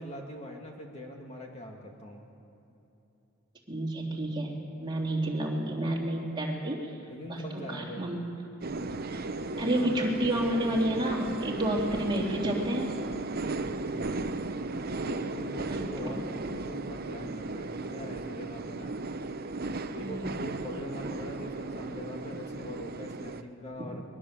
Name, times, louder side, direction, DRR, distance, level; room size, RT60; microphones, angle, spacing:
voice 1, 0.0-2.3 7.1-8.1 13.8-14.3 15.0-18.9 19.9-24.0, equal, 30° left, 0 dB, 2.4 m, -42 dB
voice 2, 3.7-6.9 7.3-8.2 9.6-12.9 15.7-16.2 20.0-20.4, right 1 dB, 25° right, -2 dB, 3.2 m, -30 dB
sound 1, 8.6-23.4, right 3 dB, 45° right, 0.8 m, -36 dB
22.0 x 22.0 x 7.6 m, 3.0 s
head